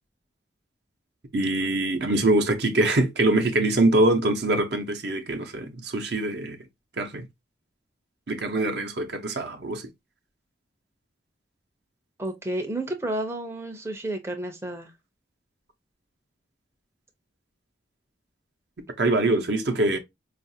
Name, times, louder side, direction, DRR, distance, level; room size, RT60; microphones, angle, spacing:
voice 1, 1.3-6.6 7.0-7.3 8.3-9.9 19.0-20.0, right 2 dB, 65° right, 0.7 m, -23 dB
voice 2, 12.2-14.9, right 1 dB, 15° right, 0.5 m, -31 dB
4.7 x 2.4 x 2.7 m
head